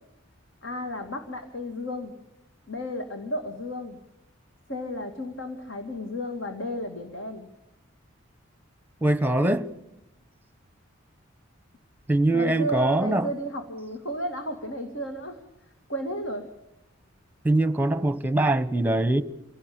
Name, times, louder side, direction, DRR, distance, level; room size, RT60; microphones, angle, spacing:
voice 1, 0.6-2.1 2.7-4.0 4.7-7.5 12.3-15.4 15.9-16.5, equal, 65° left, 6 dB, 2.6 m, -33 dB
voice 2, 9.0-9.7 12.1-13.3 17.4-19.2, right 1 dB, 10° right, 13 dB, 1.0 m, -22 dB
28.0 x 17.5 x 8.8 m, 0.91 s
head